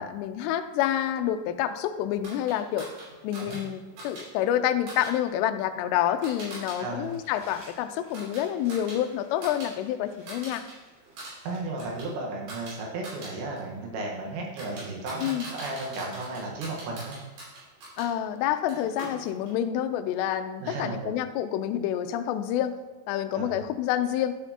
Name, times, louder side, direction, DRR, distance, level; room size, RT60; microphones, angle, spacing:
voice 1, 0.0-2.9 3.2-10.6 15.2-15.5 18.0-22.7 23.1-24.3, left 11 dB, 85° left, 8 dB, 2.5 m, -28 dB
sound 1, 2.2-6.8 7.1-9.7 10.0-10.7 11.0-18.1 18.7-19.6, right 2 dB, 60° right, 4.7 m, -44 dB
Crumpling crinkling, 6.7-11.6, right 1 dB, 40° right, 3.0 m, -56 dB
voice 2, 6.8-7.2 11.4-17.2 20.6-21.1 23.3-23.6, right 2 dB, 80° right, -1 dB, 3.5 m, -34 dB
11.0 x 7.1 x 2.8 m, 1.2 s
omnidirectional pair, 5.2 m